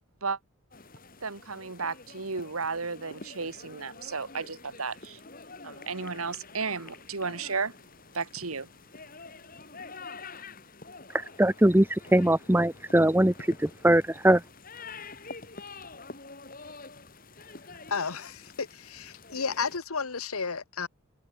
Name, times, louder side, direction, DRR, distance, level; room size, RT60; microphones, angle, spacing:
sound 1, 0.7-19.8, left 3 dB, 40° left, 3.1 m, -47 dB
voice 1, 1.2-5.2 5.6-7.7 8.1-8.7, right 4 dB, 85° right, 1.9 m, -33 dB
voice 2, 11.4-11.9 12.1-13.3 13.6-14.4, right 1 dB, 10° right, 0.7 m, -21 dB
voice 3, 17.9-20.9, left 5 dB, 85° left, 1.4 m, -32 dB
head